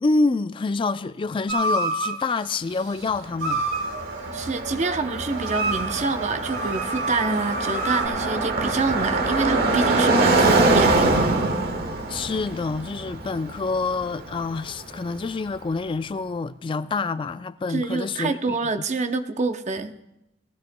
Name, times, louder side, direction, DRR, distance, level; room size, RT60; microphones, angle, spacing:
voice 1, 0.0-3.7 12.1-18.7, left 3 dB, 25° left, 0.3 m, -27 dB
sound 1, 1.5-2.2 3.4-8.1, right 2 dB, 85° right, 2.6 m, -29 dB
Car passing by, 3.1-15.2, right 2 dB, 55° right, 1.2 m, -24 dB
voice 2, 4.3-11.3 17.7-19.9, right 3 dB, 40° right, 0.7 m, -26 dB
19.5 x 16.0 x 2.2 m
head